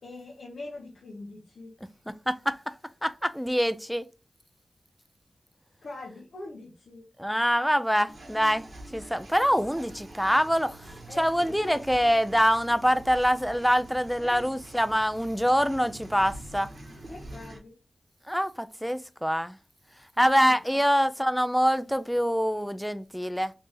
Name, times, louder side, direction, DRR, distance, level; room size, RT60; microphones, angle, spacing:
voice 1, 0.0-1.7 5.8-7.1 11.1-11.6 14.2-14.5 17.1-17.8 20.2-20.8, left 2 dB, 80° left, 0.7 m, -42 dB
voice 2, 2.3-2.6 3.0-4.0 7.2-10.8 11.2-16.7 18.3-19.6 20.2-23.5, equal, ahead, 0.4 m, -25 dB
sound 1, 8.1-17.6, right 1 dB, 60° right, 1.4 m, -45 dB
3.3 x 2.7 x 3.4 m
cardioid pair, 50°, 0 cm